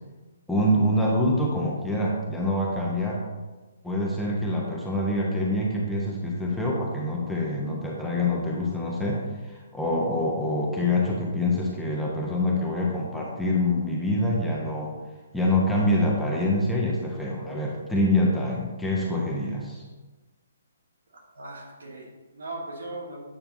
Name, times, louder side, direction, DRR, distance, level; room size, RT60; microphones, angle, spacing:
voice 1, 0.5-3.2 3.8-9.2 9.5-14.9 15.3-19.8, left 1 dB, 5° left, -4 dB, 1.0 m, -25 dB
voice 2, 21.3-23.2, right 2 dB, 65° right, -2 dB, 1.9 m, -38 dB
8.6 x 5.7 x 2.7 m, 1.2 s
figure-of-eight pair, 130°, 0 cm